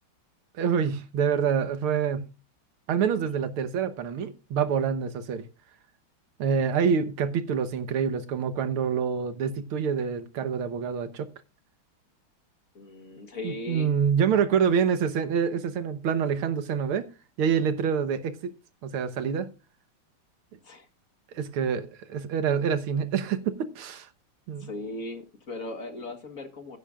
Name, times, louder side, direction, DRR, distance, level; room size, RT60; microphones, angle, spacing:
voice 1, 0.6-2.3 2.9-5.4 6.4-11.3 13.4-17.1 17.4-18.5 18.8-19.5 21.3-24.1 24.5-24.7, right 7 dB, 80° right, 2.0 m, -26 dB
voice 2, 12.7-13.9 20.6-20.9 24.6-26.8, left 2 dB, 45° left, 1.6 m, -38 dB
16.0 x 10.0 x 2.4 m
omnidirectional pair, 2.3 m